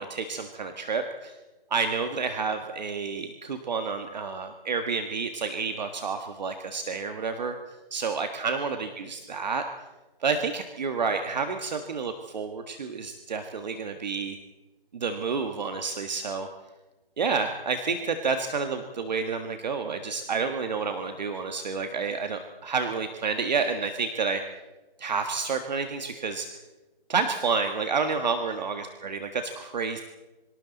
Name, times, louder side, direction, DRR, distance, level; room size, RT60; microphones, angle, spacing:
voice 1, 0.0-1.4 1.7-7.6 7.9-9.6 10.2-14.4 14.9-16.5 17.2-24.4 25.0-26.5 27.1-30.0, right 5 dB, 50° right, 6 dB, 1.7 m, -29 dB
28.0 x 25.0 x 4.1 m, 1.1 s
hypercardioid pair, 165°, 29 cm